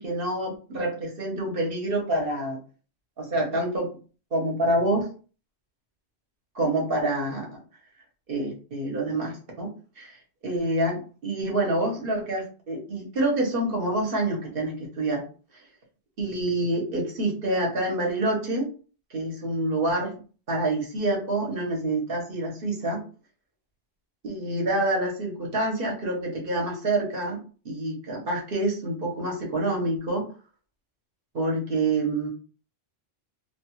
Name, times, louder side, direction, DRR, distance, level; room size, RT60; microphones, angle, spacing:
voice 1, 0.0-2.6 3.2-3.9 4.3-5.1 6.5-7.6 8.3-10.2 10.4-15.3 16.2-18.7 19.1-20.2 20.5-23.0 24.2-30.3 31.3-32.3, right 1 dB, 60° right, -1 dB, 1.0 m, -27 dB
2.5 x 2.3 x 3.0 m, 0.37 s
omnidirectional pair, 1.1 m